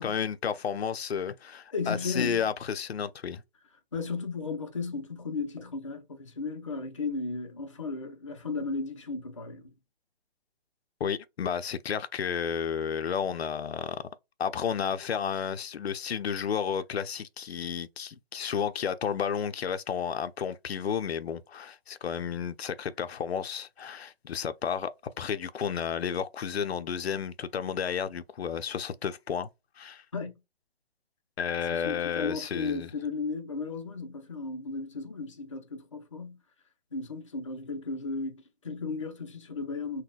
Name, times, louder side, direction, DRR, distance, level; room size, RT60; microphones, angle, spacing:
voice 1, 0.0-3.4 11.0-14.0 14.4-29.5 29.8-30.0 31.4-32.9, left 7 dB, 90° left, 0.5 m, -32 dB
voice 2, 1.7-2.5 3.9-9.7 30.1-30.3 31.7-36.4 36.9-40.0, left 4 dB, 30° left, 0.4 m, -35 dB
3.9 x 2.1 x 2.3 m
hypercardioid pair, 170°, 31 cm